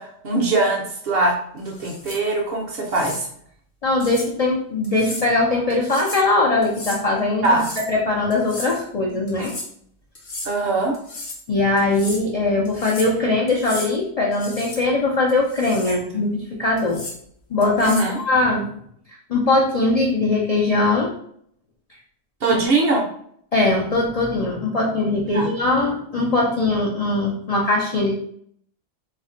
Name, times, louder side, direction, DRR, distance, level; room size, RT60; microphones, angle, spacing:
voice 1, 0.0-3.3 7.4-7.7 10.4-11.0 15.9-16.2 17.8-18.2 22.4-23.1 25.3-25.5, right 2 dB, 60° right, 0 dB, 0.7 m, -22 dB
sound 1, 1.7-2.2 2.9-3.2 4.0-4.3 4.8-5.3 5.7-6.3 6.6-7.0 7.4-7.9 8.3-8.8 9.3-9.7 10.2-10.5 10.9-11.4 11.8-12.2 12.7-13.2 13.5-13.9 14.3-14.8 15.3-16.0 16.8-17.2 17.6-18.1, left 2 dB, 50° left, 0.7 m, -35 dB
voice 2, 3.8-7.6 7.9-9.5 11.5-17.0 17.5-18.7 19.3-21.1 23.5-28.1, left 2 dB, 70° left, -3 dB, 0.3 m, -21 dB
2.5 x 2.1 x 3.6 m, 0.66 s
omnidirectional pair, 1.3 m